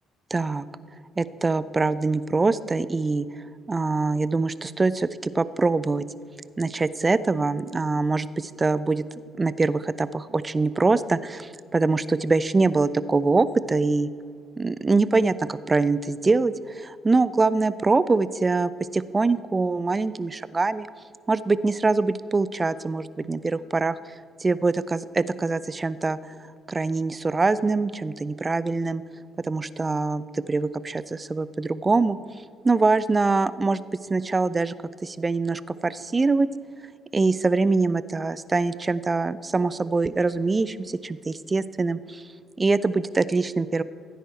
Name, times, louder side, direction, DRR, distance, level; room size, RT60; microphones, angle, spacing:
voice 1, 0.3-0.7 1.2-3.3 3.7-6.0 6.6-9.0 9.4-14.1 14.6-20.9 21.3-24.0 24.4-26.2 26.7-29.0 29.4-32.2 32.6-33.8 34.1-34.7 35.0-36.5 37.1-42.2 42.6-43.8, right 3 dB, 25° right, 17 dB, 0.5 m, -23 dB
15.0 x 9.2 x 4.5 m, 2.3 s
figure-of-eight pair, 45°, 0 cm